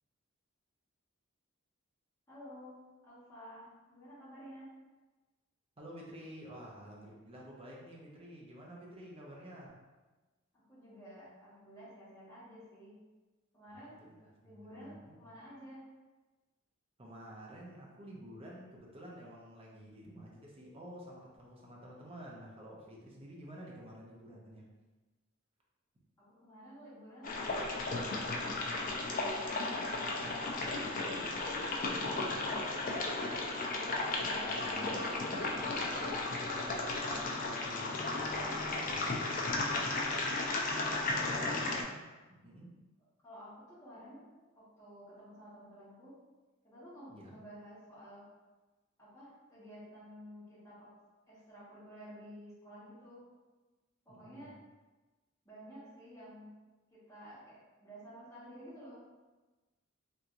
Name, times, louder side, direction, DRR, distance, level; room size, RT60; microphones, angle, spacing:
voice 1, 2.3-2.7 3.0-4.7 10.5-12.9 13.5-14.0 14.4-15.8 26.3-27.4 28.2-31.2 31.6-33.4 34.1-36.8 40.7-41.0 41.4-41.5 43.2-44.2 44.5-46.1 46.6-48.2 49.0-50.9 51.3-53.2 54.0-54.5 55.4-56.5 56.9-59.0, equal, 15° left, -11 dB, 1.4 m, -52 dB
voice 2, 5.8-9.8 13.7-15.3 17.0-24.7 32.0-32.4 33.8-34.9 37.1-39.9 41.1-42.7 47.1-47.3 54.1-54.5, equal, 30° right, -3 dB, 0.6 m, -51 dB
sound 1, 27.2-41.8, left 2 dB, 40° left, 0.4 m, -35 dB
3.4 x 2.9 x 2.5 m, 1.2 s
head